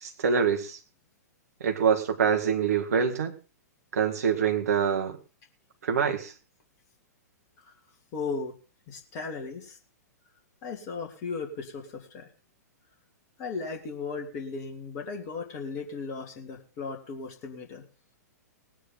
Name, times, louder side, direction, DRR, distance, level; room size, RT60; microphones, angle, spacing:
voice 1, 0.0-0.8 1.6-3.3 3.9-5.2 5.8-6.3, right 7 dB, 60° right, 5 dB, 2.3 m, -25 dB
voice 2, 8.1-8.5 8.9-9.8 10.6-12.3 13.4-17.8, left 4 dB, 35° left, 2 dB, 2.7 m, -36 dB
19.5 x 9.3 x 4.0 m, 0.33 s
figure-of-eight pair, 105°, 9 cm